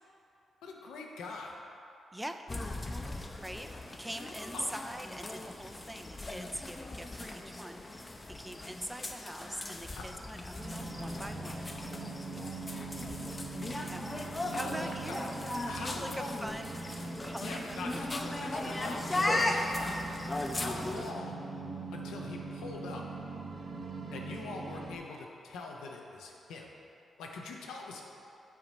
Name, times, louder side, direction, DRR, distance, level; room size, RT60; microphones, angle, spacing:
voice 1, 0.6-1.6 4.5-4.6 10.0-10.1 14.5-15.2 15.7-16.3 17.4-20.0 20.5-21.5 21.9-23.0 24.1-26.7 27.2-28.0, left 3 dB, 85° left, 0 dB, 0.7 m, -43 dB
voice 2, 2.1-2.4 3.4-3.7 4.0-11.7 13.8-14.0 14.5-15.4 15.7-16.9 17.2-18.0, right 1 dB, 10° right, 6 dB, 0.5 m, -43 dB
sound 1, 2.5-21.1, left 2 dB, 30° left, 0.7 m, -38 dB
sound 2, 10.6-25.0, right 3 dB, 45° right, 1.0 m, -41 dB
5.9 x 4.0 x 6.3 m, 2.8 s
supercardioid pair, 45°, 0 cm